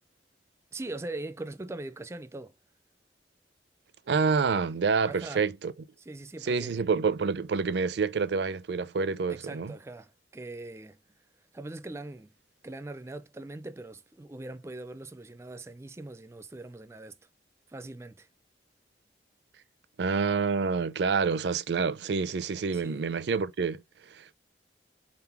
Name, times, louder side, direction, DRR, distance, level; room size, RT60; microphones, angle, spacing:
voice 1, 0.7-2.6 5.1-5.5 6.0-6.7 9.3-11.0 11.5-12.3 12.6-17.2 17.7-18.3 22.7-23.0, right 2 dB, 15° right, 0.4 m, -41 dB
voice 2, 4.1-5.7 6.5-9.7 20.0-23.8 24.1-24.3, right 5 dB, 75° right, 0.5 m, -27 dB
3.9 x 3.7 x 2.8 m
head